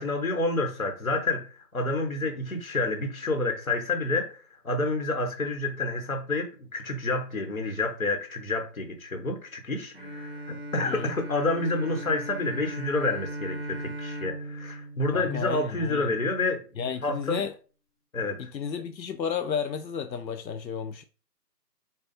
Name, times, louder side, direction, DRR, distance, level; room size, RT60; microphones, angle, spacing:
voice 1, 0.0-17.4 18.1-18.5, left 2 dB, 55° left, 1.2 m, -29 dB
Bowed string instrument, 9.9-16.1, right 1 dB, 35° left, 0.8 m, -38 dB
voice 2, 10.8-11.2 15.1-16.1 16.8-17.6 18.4-21.0, left 7 dB, 90° left, 0.7 m, -32 dB
4.0 x 2.3 x 4.1 m
figure-of-eight pair, 180°, 50 cm